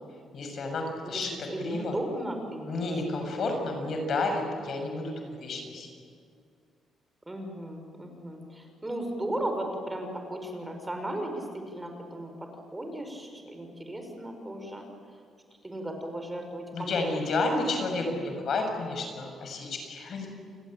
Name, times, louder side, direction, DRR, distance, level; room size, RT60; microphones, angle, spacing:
voice 1, 0.3-2.0 2.7-5.9 16.7-20.3, left 2 dB, 60° left, 4 dB, 6.4 m, -31 dB
voice 2, 1.5-3.5 7.3-14.8 15.1-15.2 15.6-17.2 17.7-18.2, right 1 dB, 15° right, 4 dB, 5.3 m, -36 dB
29.5 x 21.5 x 9.0 m, 2.3 s
cardioid pair, 90°, 0 cm